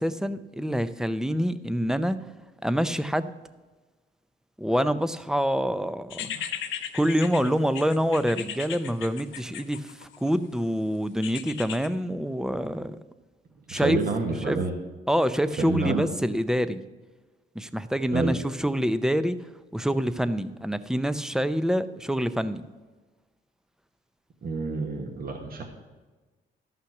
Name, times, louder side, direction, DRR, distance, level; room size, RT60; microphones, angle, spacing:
voice 1, 0.0-2.2 2.6-3.3 4.6-6.3 6.9-13.0 13.7-14.0 14.5-14.6 15.1-16.8 17.6-19.4 19.7-22.6, equal, 5° right, 12 dB, 0.6 m, -26 dB
sound 1, 6.1-10.3 11.2-11.9, left 9 dB, 75° left, 0.9 m, -36 dB
voice 2, 13.7-14.8 15.6-16.1 18.1-18.4 24.4-25.6, right 3 dB, 50° right, 1 dB, 1.4 m, -28 dB
13.0 x 5.8 x 5.9 m, 1.3 s
cardioid pair, 90°, 20 cm